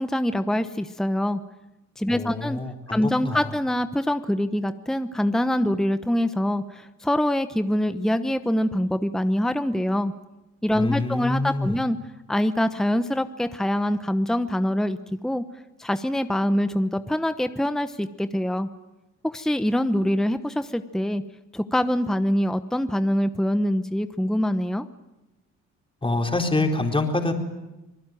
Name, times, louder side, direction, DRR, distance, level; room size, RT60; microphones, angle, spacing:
voice 1, 0.0-1.4 2.0-2.6 2.9-10.1 10.6-12.0 12.3-15.0 15.2-15.4 15.8-18.7 19.3-21.2 21.5-24.8, left 1 dB, ahead, 10 dB, 1.0 m, -24 dB
voice 2, 2.1-3.5 10.7-11.8 26.0-27.3, left 2 dB, 15° left, 3 dB, 4.1 m, -26 dB
27.0 x 19.5 x 9.2 m, 0.97 s
cardioid pair, 90°, 30 cm